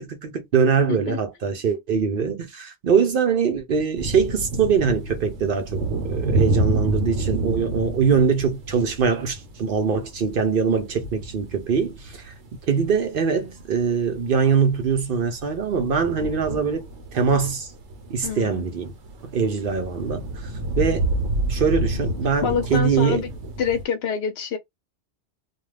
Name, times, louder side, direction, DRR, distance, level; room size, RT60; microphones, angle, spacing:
voice 1, 0.0-12.3 12.7-16.9 17.1-17.7 18.1-18.9 19.2-20.3 20.8-21.1 21.5-23.2, right 6 dB, 60° right, 0.8 m, -23 dB
sound 1, 4.0-23.8, right 1 dB, 80° right, 1.1 m, -29 dB
voice 2, 18.2-18.7 22.4-23.3 23.6-24.6, left 6 dB, 70° left, 0.8 m, -26 dB
2.4 x 2.3 x 3.2 m
omnidirectional pair, 1.2 m